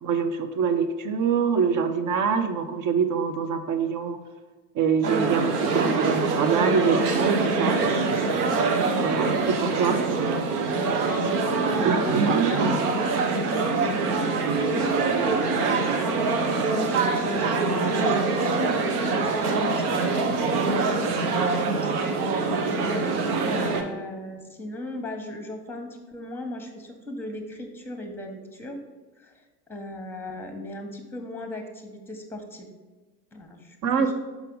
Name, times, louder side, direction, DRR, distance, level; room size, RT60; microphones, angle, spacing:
voice 1, 0.0-4.2 4.7-7.8 9.0-10.2 11.8-12.8 33.8-34.1, right 6 dB, 40° right, 9 dB, 0.8 m, -25 dB
sound 1, 5.0-23.8, right 4 dB, 70° right, 0.9 m, -24 dB
voice 2, 11.5-12.8 13.0-20.1 20.4-28.8 29.2-32.7 33.3-34.1, left 1 dB, 5° left, 4 dB, 1.1 m, -37 dB
5.8 x 5.5 x 3.9 m, 1.3 s
figure-of-eight pair, 65°, 47 cm